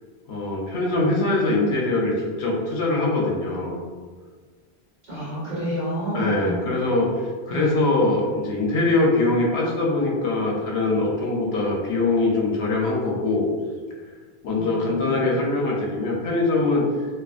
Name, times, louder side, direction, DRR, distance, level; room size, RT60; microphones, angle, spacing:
voice 1, 0.3-2.1 2.4-3.8 6.1-7.1 7.5-13.5 14.4-17.1, left 2 dB, 75° left, -2 dB, 0.8 m, -22 dB
voice 2, 5.1-6.5 7.5-7.8 14.5-15.4, equal, 45° right, -10 dB, 1.2 m, -30 dB
2.5 x 2.4 x 2.4 m, 1.5 s
omnidirectional pair, 1.1 m